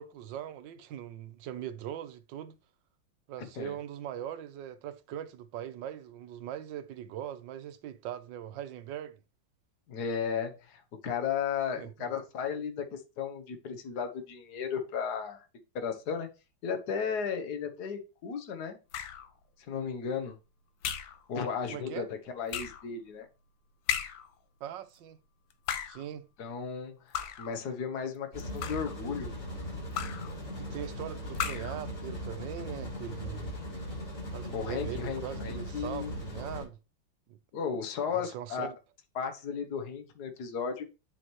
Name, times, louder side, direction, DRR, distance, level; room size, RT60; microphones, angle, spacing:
voice 1, 0.0-2.6 3.3-9.2 11.8-12.1 21.7-22.1 24.6-25.2 25.9-26.3 30.6-33.5 34.3-36.8 37.3-37.4 38.1-38.8, right 10 dB, 75° right, 1.4 m, -41 dB
voice 2, 3.4-3.7 9.9-15.4 15.7-16.3 16.6-18.8 19.7-20.4 21.3-23.3 26.4-29.3 34.5-36.1 37.5-38.7 39.1-40.8, left 6 dB, 60° left, 1.6 m, -35 dB
sound 1, 18.9-19.3 20.8-21.2 22.5-22.9 23.9-24.3 25.5-26.1 27.1-27.6 28.4-29.0 29.9-30.3 31.3-31.8, left 9 dB, 90° left, 1.5 m, -35 dB
sound 2, 28.3-36.6, equal, 40° left, 5.4 m, -39 dB
9.9 x 4.5 x 3.1 m
omnidirectional pair, 2.1 m